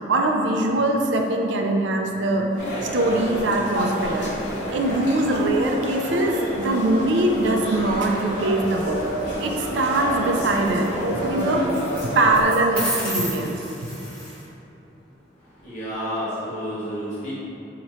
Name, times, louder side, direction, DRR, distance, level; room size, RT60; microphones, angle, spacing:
voice 1, 0.1-2.6 2.9-4.3 4.7-9.0 9.4-11.7 12.2-13.6, right 2 dB, 75° right, 2 dB, 0.4 m, -22 dB
sound 1, 2.6-12.4, equal, 70° left, 0.8 m, -29 dB
sound 2, 8.9-9.4 11.7-12.0 12.3-14.4, equal, 5° left, 1.3 m, -31 dB
voice 2, 15.6-17.3, equal, 45° left, -11 dB, 1.2 m, -30 dB
3.0 x 2.8 x 4.2 m, 2.9 s
head